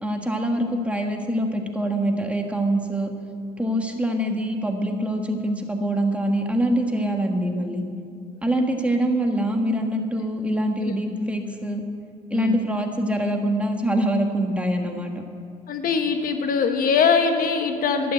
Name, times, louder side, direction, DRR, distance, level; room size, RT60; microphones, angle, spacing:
voice 1, 0.0-3.1 3.6-7.8 8.4-11.8 12.3-15.1, right 1 dB, 5° right, 3 dB, 1.6 m, -24 dB
voice 2, 15.7-18.1, left 5 dB, 55° left, 6 dB, 1.3 m, -22 dB
12.0 x 12.0 x 7.9 m, 2.4 s
cardioid pair, 110°, 17 cm